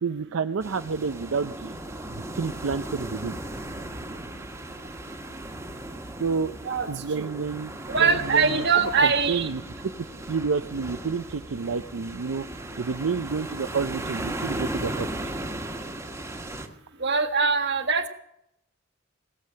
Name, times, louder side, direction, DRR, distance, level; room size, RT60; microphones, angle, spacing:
voice 1, 0.0-1.8 2.1-3.3 6.2-6.5 6.9-7.7 8.0-8.7 9.0-9.6 10.3-12.4 12.8-15.1, right 5 dB, 80° right, 9 dB, 0.5 m, -29 dB
sound 1, 0.6-16.7, right 1 dB, 15° right, 1.4 m, -36 dB
voice 2, 7.9-9.5 17.0-18.1, right 5 dB, 55° right, 6 dB, 1.5 m, -22 dB
18.5 x 7.5 x 8.7 m, 0.77 s
head